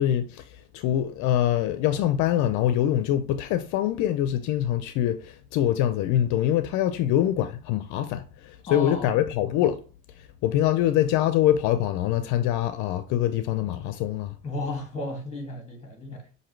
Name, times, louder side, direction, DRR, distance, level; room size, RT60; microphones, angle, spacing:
voice 1, 0.0-9.8 10.4-14.3, left 11 dB, 75° left, 0.5 m, -24 dB
voice 2, 8.7-9.2 14.4-16.2, left 2 dB, 20° left, 2.0 m, -33 dB
6.0 x 2.7 x 3.1 m
cardioid pair, 105°, 30 cm